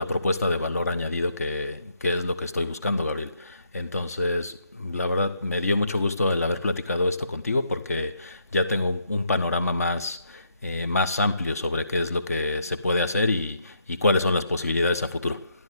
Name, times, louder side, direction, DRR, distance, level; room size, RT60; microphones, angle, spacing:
voice 1, 0.0-15.5, left 2 dB, 35° left, 1.3 m, -26 dB
14.5 x 11.0 x 8.4 m
figure-of-eight pair, 165°, 14 cm